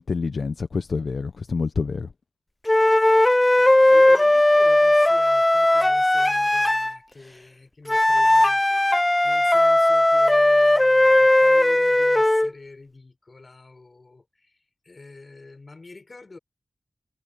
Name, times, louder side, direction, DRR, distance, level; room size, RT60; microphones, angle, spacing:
voice 1, 0.0-2.1, left 4 dB, 75° left, 0.7 m, -27 dB
sound 1, 2.7-7.0 7.9-12.5, left 1 dB, 20° left, 0.4 m, -17 dB
voice 2, 3.3-8.6 9.2-16.4, left 3 dB, 50° left, 4.9 m, -46 dB
cardioid pair, 55°, 0 cm